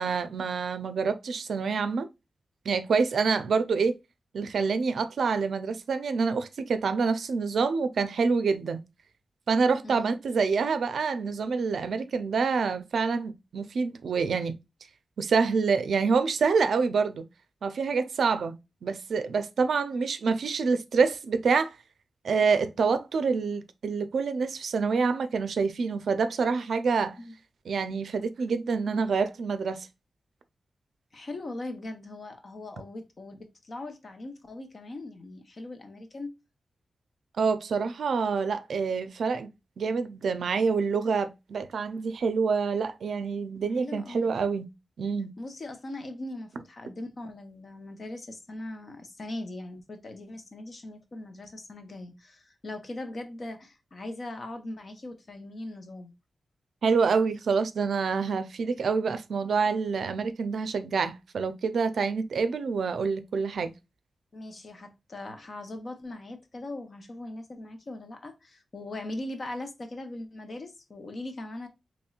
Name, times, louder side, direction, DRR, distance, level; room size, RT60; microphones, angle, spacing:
voice 1, 0.0-2.1 2.7-3.9 4.3-8.8 9.5-14.5 15.2-17.2 17.6-18.5 18.8-21.8 22.2-27.2 27.7-29.9 37.4-39.5 39.8-44.7 45.0-45.3 56.8-63.7, right 5 dB, 80° right, 0.5 m, -27 dB
voice 2, 9.8-10.1 27.2-27.3 31.1-36.3 43.8-44.3 45.4-56.1 64.3-71.7, left 2 dB, 40° left, 0.8 m, -40 dB
4.4 x 3.1 x 2.3 m
wide cardioid pair, 165°, 0 cm